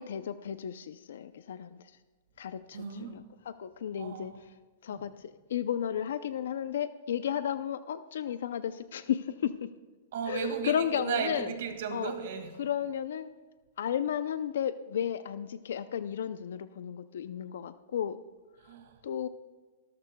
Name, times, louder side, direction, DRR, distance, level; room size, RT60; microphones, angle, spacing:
voice 1, 0.0-1.8 2.4-4.5 4.8-9.7 10.2-11.6 11.9-12.1 12.6-13.3 13.8-18.2 19.0-19.3, left 9 dB, 80° left, 13 dB, 0.5 m, -33 dB
voice 2, 2.7-3.1 4.0-4.4 4.9-5.1 10.1-12.5 18.6-19.0, right 6 dB, 65° right, 5 dB, 2.0 m, -35 dB
23.0 x 13.5 x 2.3 m, 1.3 s
supercardioid pair, 160°, 0 cm